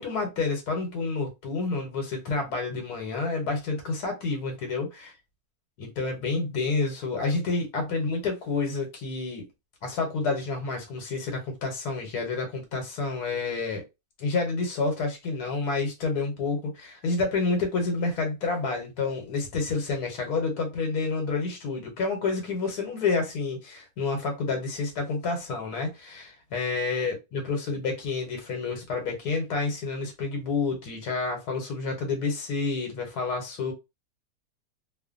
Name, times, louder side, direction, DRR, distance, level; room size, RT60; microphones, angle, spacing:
voice 1, 0.0-5.1 5.8-9.5 9.8-13.8 14.2-33.7, left 4 dB, 90° left, 1.4 m, -29 dB
2.9 x 2.1 x 2.4 m
omnidirectional pair, 1.6 m